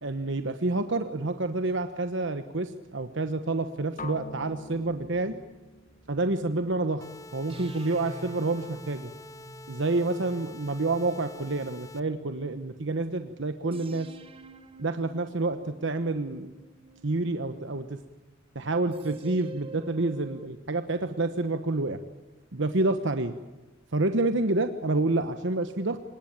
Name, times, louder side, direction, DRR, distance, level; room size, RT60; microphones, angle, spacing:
voice 1, 0.0-5.4 6.1-7.1 7.3-9.1 9.7-14.1 14.8-16.5 17.0-18.0 18.5-22.0 22.5-23.3 23.9-26.0, right 2 dB, 65° right, 8 dB, 1.1 m, -28 dB
sound 1, 4.0-7.9, left 2 dB, 40° left, 1.3 m, -46 dB
sound 2, 4.8-6.9 7.5-12.7 13.7-18.0 18.9-20.5, right 3 dB, 30° right, 1.5 m, -49 dB
sound 3, 7.0-12.0, left 2 dB, 15° left, 0.9 m, -47 dB
25.5 x 20.0 x 8.9 m, 1.2 s
head